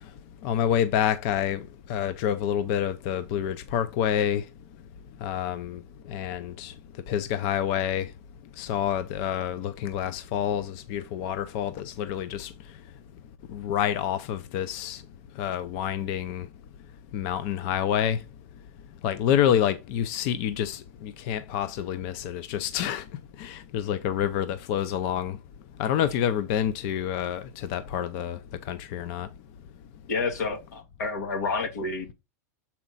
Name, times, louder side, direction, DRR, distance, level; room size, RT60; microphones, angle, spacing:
voice 1, 0.4-1.6 1.9-4.4 5.2-5.8 6.1-6.7 7.1-8.1 8.6-12.5 13.5-15.0 15.4-16.5 17.1-18.2 19.0-23.0 23.4-25.4 25.8-28.4 28.7-29.3, left 10 dB, 40° left, 0.5 m, -28 dB
voice 2, 30.1-32.1, left 4 dB, 85° left, 2.1 m, -29 dB
7.1 x 4.3 x 3.9 m
supercardioid pair, 160°, 9 cm